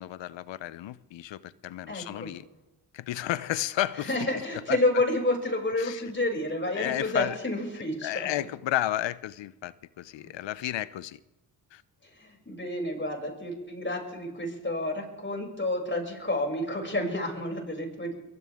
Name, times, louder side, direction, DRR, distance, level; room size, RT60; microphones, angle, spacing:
voice 1, 0.0-2.4 2.9-4.1 4.7-4.8 5.8-6.0 6.8-7.4 8.0-11.2 11.7-11.8, left 13 dB, 75° left, 0.7 m, -32 dB
voice 2, 1.9-2.3 4.0-8.3 10.2-10.3 12.0-18.1, left 1 dB, 25° left, 6.9 m, -30 dB
23.5 x 16.0 x 3.6 m
supercardioid pair, 55°, 44 cm